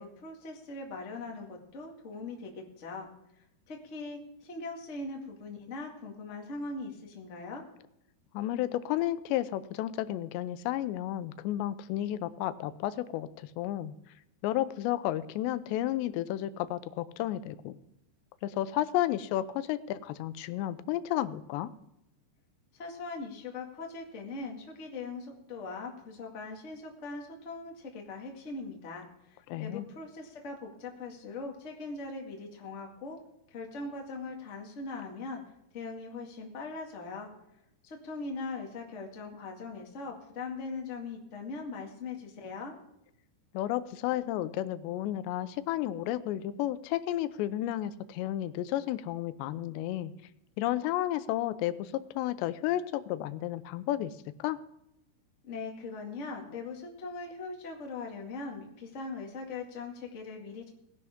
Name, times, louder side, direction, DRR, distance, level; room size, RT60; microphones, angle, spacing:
voice 1, 0.0-3.1 3.7-7.6 22.7-33.2 33.5-35.4 35.7-37.3 37.8-42.7 55.4-60.7, left 3 dB, 35° left, 1 dB, 1.2 m, -40 dB
voice 2, 8.3-13.9 14.4-17.8 18.4-21.7 29.5-29.9 43.5-50.1 50.6-54.1 54.4-54.6, left 13 dB, 90° left, 13 dB, 2.9 m, -32 dB
18.5 x 11.0 x 3.6 m, 0.83 s
omnidirectional pair, 4.9 m